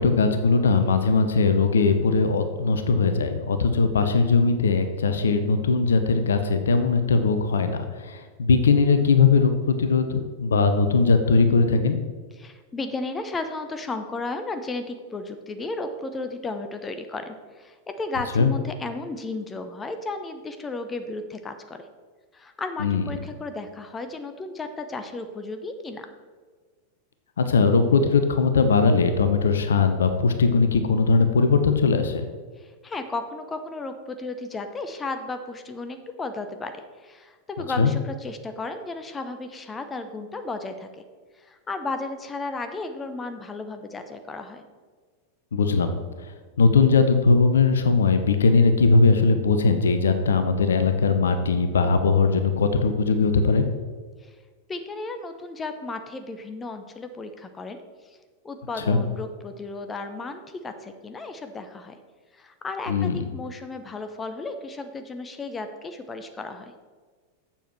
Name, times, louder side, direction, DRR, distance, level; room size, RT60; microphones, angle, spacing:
voice 1, 0.0-12.0 18.4-18.5 22.8-23.1 27.4-32.3 37.8-37.9 45.5-46.0 46.6-53.6 58.8-59.0 62.9-63.2, left 4 dB, 65° left, 8 dB, 0.8 m, -20 dB
voice 2, 12.4-21.8 22.3-26.1 32.6-40.9 41.4-44.6 54.2-54.3 54.7-58.2 58.4-62.0 62.3-66.7, left 3 dB, 15° left, 8 dB, 0.7 m, -34 dB
7.2 x 7.0 x 6.0 m, 1.5 s
figure-of-eight pair, 90°, 0 cm